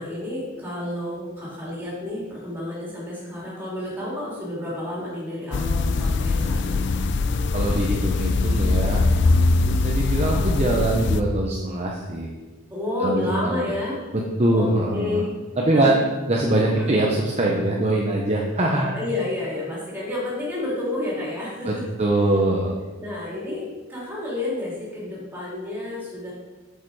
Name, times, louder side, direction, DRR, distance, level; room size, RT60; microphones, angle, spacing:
voice 1, 0.0-6.8 12.7-14.0 14.5-15.3 15.7-15.9 16.8-16.9 18.9-21.8 23.0-23.6 23.9-26.3, left 2 dB, 10° right, -6 dB, 3.0 m, -30 dB
sound 1, 5.5-11.2, left 3 dB, 50° left, 0.4 m, -22 dB
voice 2, 7.5-12.3 13.0-13.7 14.1-15.2 15.6-15.9 16.3-18.9 21.6-22.7, right 1 dB, 30° right, -2 dB, 0.8 m, -23 dB
7.5 x 6.5 x 4.7 m, 1.3 s
head